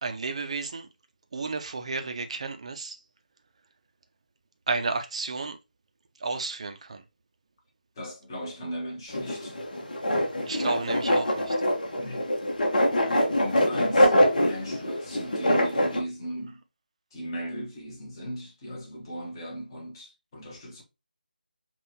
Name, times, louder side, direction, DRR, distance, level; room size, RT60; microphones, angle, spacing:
voice 1, 0.0-0.9 1.3-3.0 4.7-5.6 6.2-7.0 10.4-11.6, right 4 dB, 40° right, 0.6 m, -32 dB
voice 2, 8.0-9.6 12.0-12.3 13.0-14.1 14.4-16.6 17.1-20.8, equal, 25° left, 1.2 m, -38 dB
sound 1, 9.1-16.0, equal, 55° left, 1.3 m, -24 dB
5.6 x 2.5 x 2.9 m
figure-of-eight pair, 160°, 5 cm